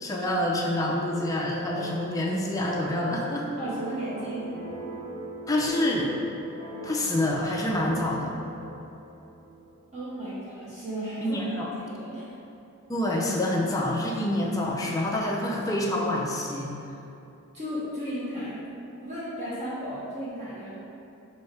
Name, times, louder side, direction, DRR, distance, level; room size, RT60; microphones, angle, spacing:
voice 1, 0.0-3.5 5.5-6.1 6.8-8.3 11.2-11.7 12.9-16.7, left 1 dB, 15° left, -2 dB, 0.3 m, -27 dB
sound 1, 1.0-10.1, right 2 dB, 70° right, 0.6 m, -42 dB
voice 2, 3.6-4.4 9.9-12.3 17.5-18.6 19.0-20.8, equal, 30° right, -9 dB, 0.7 m, -35 dB
3.2 x 2.7 x 4.5 m, 2.8 s
head